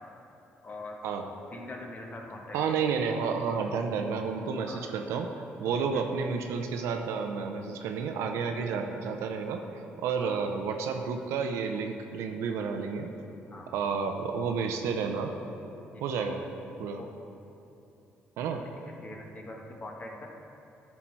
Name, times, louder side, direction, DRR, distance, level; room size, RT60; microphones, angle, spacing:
voice 1, 0.6-1.0 1.5-2.8 4.6-4.9 5.6-6.0 10.2-10.4 13.5-14.1 15.9-16.3 16.9-17.1 18.5-18.6 19.0-20.3, left 2 dB, 35° left, 1 dB, 1.3 m, -43 dB
voice 2, 2.5-5.3 5.6-9.7 10.0-13.1 13.7-15.3 16.0-16.4 16.8-17.0 18.4-18.6, right 5 dB, 85° right, 4 dB, 0.6 m, -31 dB
10.5 x 5.9 x 4.5 m, 2.8 s
cardioid pair, 75°, 5 cm